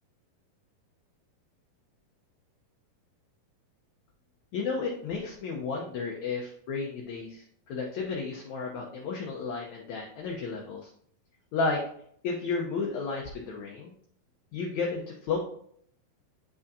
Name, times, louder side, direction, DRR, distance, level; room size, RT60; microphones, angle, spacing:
voice 1, 4.5-10.9 11.5-11.8 12.2-13.9 14.5-15.4, left 4 dB, 70° left, -1 dB, 1.8 m, -32 dB
8.2 x 6.2 x 2.7 m, 0.65 s
omnidirectional pair, 4.3 m